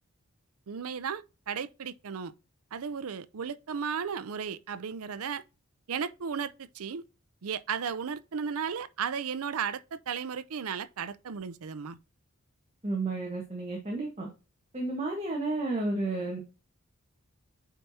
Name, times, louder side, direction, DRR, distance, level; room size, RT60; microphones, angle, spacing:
voice 1, 0.7-2.3 2.7-5.4 5.9-7.0 7.4-12.0, right 6 dB, 85° right, 0.5 m, -35 dB
voice 2, 12.8-14.3 14.7-16.4, right 2 dB, 30° right, 1.4 m, -32 dB
8.9 x 4.6 x 2.7 m
head